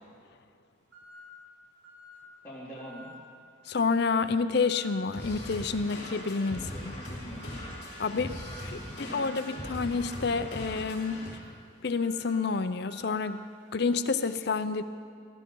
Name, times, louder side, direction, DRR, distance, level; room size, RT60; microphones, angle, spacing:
sound 1, 0.9-1.4 1.8-2.3 2.7-3.2 3.7-4.1 4.6-5.0 5.5-5.9 6.4-6.9 7.3-7.8 8.2-8.7 9.2-9.6 10.1-14.3, right 2 dB, 65° right, 3.6 m, -53 dB
voice 1, 2.4-3.1 6.5-7.6 8.5-9.3, equal, 10° left, -12 dB, 2.8 m, -45 dB
voice 2, 3.7-6.9 8.0-8.4 8.6-11.2 11.8-13.4 13.7-14.8, left 4 dB, 55° left, 11 dB, 0.5 m, -29 dB
sound 2, 5.1-11.3, left 1 dB, 35° left, 4.6 m, -40 dB
21.0 x 14.0 x 3.8 m, 2.3 s
head